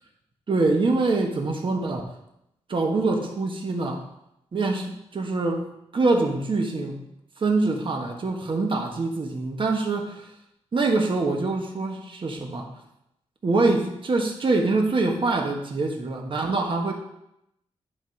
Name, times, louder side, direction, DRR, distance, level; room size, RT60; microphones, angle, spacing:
voice 1, 0.5-2.1 2.7-4.0 4.5-7.0 7.4-10.3 10.7-12.7 13.4-16.9, right 3 dB, 50° right, 2 dB, 1.4 m, -24 dB
10.5 x 4.0 x 4.6 m, 0.80 s
wide cardioid pair, 100°, 11 cm